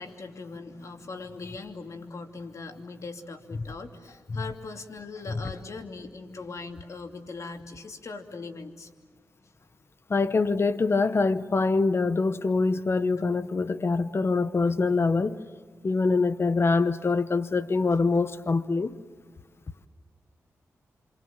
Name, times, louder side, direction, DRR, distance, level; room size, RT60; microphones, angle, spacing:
voice 1, 0.0-8.9 13.2-13.3, left 3 dB, 60° left, 2.8 m, -40 dB
voice 2, 10.1-15.4 15.8-18.9, left 3 dB, 45° left, 1.1 m, -24 dB
27.5 x 26.0 x 7.4 m
cardioid pair, 55°, 6 cm